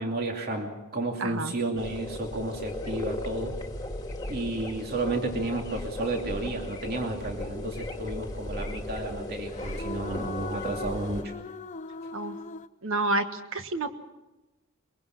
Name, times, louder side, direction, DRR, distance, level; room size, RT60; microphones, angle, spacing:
voice 1, 0.0-3.5 4.3-11.3, right 2 dB, 50° right, 2 dB, 2.6 m, -32 dB
voice 2, 1.2-1.5 12.1-12.4 12.8-13.9, right 2 dB, 65° right, 8 dB, 1.5 m, -29 dB
sound 1, 1.8-11.2, left 1 dB, 20° left, 2.0 m, -36 dB
sound 2, 7.4-8.1 9.5-12.7, left 4 dB, 35° left, 0.7 m, -40 dB
22.5 x 22.5 x 6.0 m, 1.0 s
head